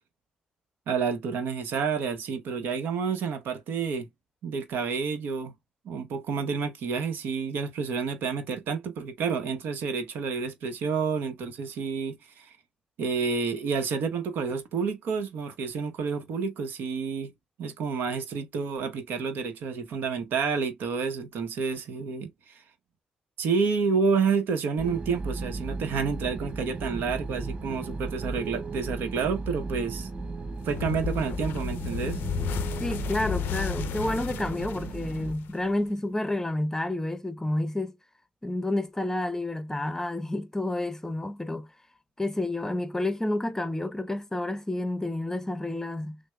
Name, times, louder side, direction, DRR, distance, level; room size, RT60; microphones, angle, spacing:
voice 1, 0.9-4.1 4.4-5.5 5.8-12.5 13.0-17.3 17.6-22.3 23.4-30.1 30.6-32.2, right 5 dB, 70° right, 0.8 m, -29 dB
sound 1, 24.8-35.3, right 3 dB, 30° right, 0.8 m, -35 dB
sound 2, 30.7-35.9, left 8 dB, 75° left, 0.4 m, -34 dB
voice 2, 32.8-38.0 38.4-41.7 42.2-46.2, left 1 dB, 15° left, 0.7 m, -30 dB
6.2 x 2.1 x 2.2 m
supercardioid pair, 65°, 4 cm